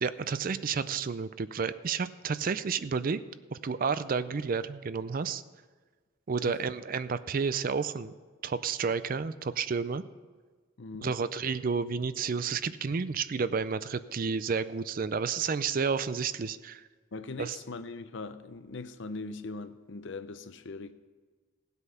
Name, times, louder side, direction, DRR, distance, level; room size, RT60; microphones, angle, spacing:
voice 1, 0.0-3.2 3.5-5.4 6.3-8.1 8.4-10.0 11.0-16.8 17.4-17.6, right 5 dB, 40° right, 0.4 m, -31 dB
voice 2, 10.8-11.1 17.1-20.9, left 3 dB, 60° left, 0.6 m, -40 dB
16.5 x 8.2 x 5.6 m
head